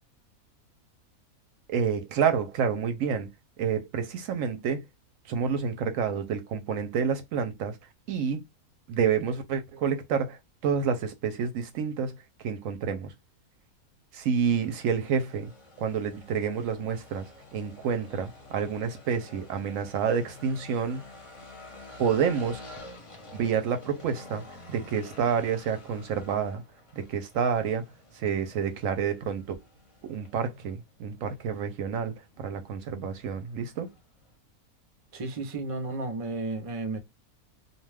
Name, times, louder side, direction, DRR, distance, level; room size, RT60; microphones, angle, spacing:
voice 1, 1.7-3.3 3.6-4.8 5.3-7.7 8.1-8.4 8.9-12.1 12.4-13.1 14.1-15.5 15.8-17.3 17.5-21.0 22.0-22.6 23.3-24.4 24.7-26.6 26.9-27.8 28.1-29.4 30.0-33.9, right 7 dB, 70° right, 0.9 m, -28 dB
sound 1, 14.5-34.4, left 2 dB, 30° left, 0.7 m, -50 dB
voice 2, 35.1-37.0, right 2 dB, 40° right, 0.4 m, -33 dB
2.5 x 2.2 x 3.2 m
omnidirectional pair, 1.5 m